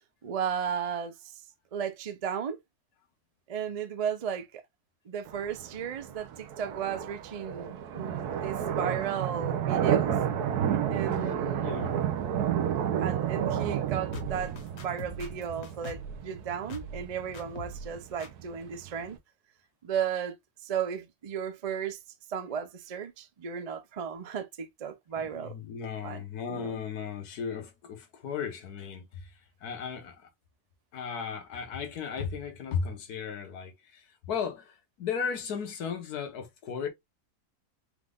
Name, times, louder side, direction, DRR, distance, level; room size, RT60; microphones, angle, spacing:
voice 1, 0.2-1.4 1.7-2.6 3.5-4.6 5.1-10.1 10.9-12.0 13.0-19.2 19.8-20.3 20.6-22.0 22.3-25.6 26.0-26.8, right 8 dB, 60° right, 0.4 m, -35 dB
sound 1, 5.3-19.2, right 9 dB, 85° right, 1.3 m, -31 dB
voice 2, 11.6-12.0 25.3-30.3 30.9-36.9, left 6 dB, 85° left, 1.6 m, -36 dB
sound 2, 14.1-16.2 16.7-17.1 17.3-17.9 18.2-18.3, left 1 dB, 50° left, 1.1 m, -42 dB
4.9 x 2.4 x 3.5 m
omnidirectional pair, 1.6 m